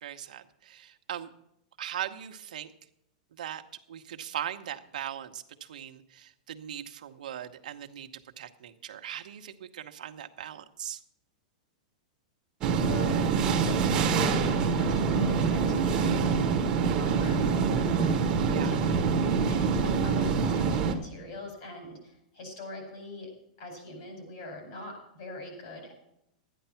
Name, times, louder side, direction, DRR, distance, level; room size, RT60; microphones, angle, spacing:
voice 1, 0.0-1.3 1.8-2.7 3.4-3.6 3.9-8.1 8.4-11.0 18.5-18.7, right 10 dB, 75° right, 6 dB, 1.1 m, -39 dB
sound 1, 12.6-20.9, right 5 dB, 20° right, 1.2 m, -25 dB
voice 2, 12.8-16.4 17.0-18.2 18.5-23.3 23.6-26.0, left 2 dB, 40° left, 3 dB, 5.3 m, -43 dB
12.5 x 10.0 x 5.7 m, 0.78 s
supercardioid pair, 175°, 4 cm